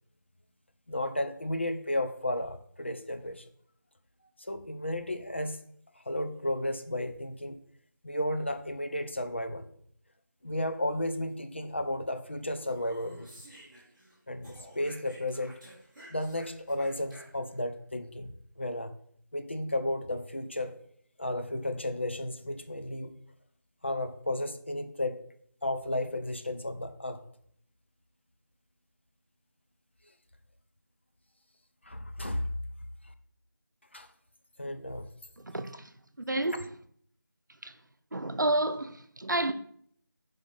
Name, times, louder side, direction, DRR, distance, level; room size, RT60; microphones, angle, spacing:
voice 1, 0.9-3.4 4.4-5.6 6.1-7.6 8.0-9.7 10.4-13.3 14.3-15.5 16.1-18.9 19.3-20.7 21.2-23.1 23.8-25.2 25.6-27.2 31.9-32.5 33.9-34.1 34.6-35.1, left 1 dB, 35° left, 0.6 m, -33 dB
Speech, 12.5-14.1 14.4-17.6, right 1 dB, 5° right, 1.5 m, -52 dB
voice 2, 36.3-36.6 37.6-37.7 38.1-39.5, right 2 dB, 65° right, 0.7 m, -29 dB
5.8 x 4.9 x 4.0 m
figure-of-eight pair, 170°, 11 cm